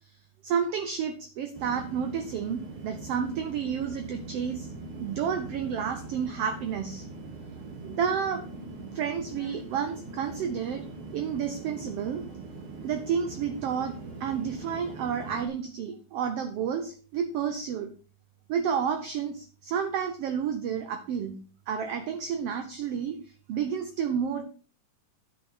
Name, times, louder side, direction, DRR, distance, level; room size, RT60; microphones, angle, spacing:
voice 1, 0.4-4.7 5.0-7.0 7.8-8.4 8.9-10.8 11.1-12.3 12.8-17.9 18.5-21.3 21.7-23.2 23.5-24.5, right 7 dB, 75° right, 7 dB, 1.4 m, -30 dB
sound 1, 1.5-15.5, right 3 dB, 45° right, 2.6 m, -42 dB
9.8 x 7.8 x 4.2 m, 0.41 s
omnidirectional pair, 3.7 m